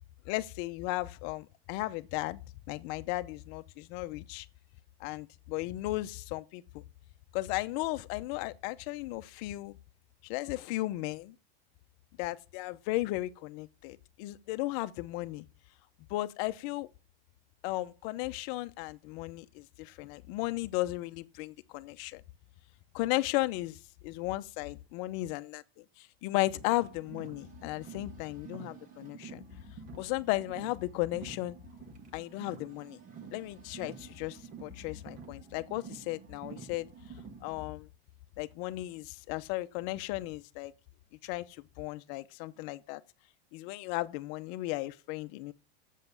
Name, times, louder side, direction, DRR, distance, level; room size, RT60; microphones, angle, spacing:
voice 1, 0.2-2.4 2.7-4.5 5.0-6.8 7.3-9.8 10.2-11.3 12.2-15.4 16.1-16.9 17.6-22.2 22.9-29.4 30.0-31.6 32.1-33.0 33.3-36.9 37.4-37.9 38.4-40.7 41.2-43.0 43.5-45.5, left 18 dB, 45° left, 0.8 m, -35 dB
Car, 26.5-37.6, right 6 dB, 25° right, 1.4 m, -49 dB
7.7 x 7.4 x 6.9 m
supercardioid pair, 145°, 31 cm